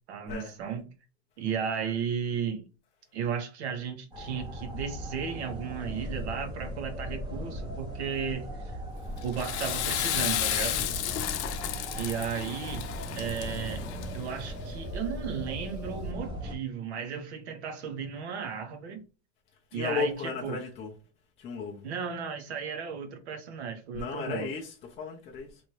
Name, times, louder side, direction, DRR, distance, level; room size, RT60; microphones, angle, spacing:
voice 1, 0.1-0.8 1.4-2.6 3.1-8.7 9.2-10.8 12.0-12.8 13.1-13.9 14.1-19.0 19.7-20.6 21.8-24.5, right 7 dB, 75° right, 1.0 m, -34 dB
sound 1, 4.1-16.5, equal, 15° right, 0.7 m, -38 dB
Water / Toilet flush, 9.2-14.4, left 12 dB, 90° left, 0.5 m, -32 dB
voice 2, 19.7-20.9 21.4-21.8 23.9-25.6, left 5 dB, 20° left, 0.4 m, -34 dB
3.0 x 2.6 x 3.1 m
supercardioid pair, 135°, 33 cm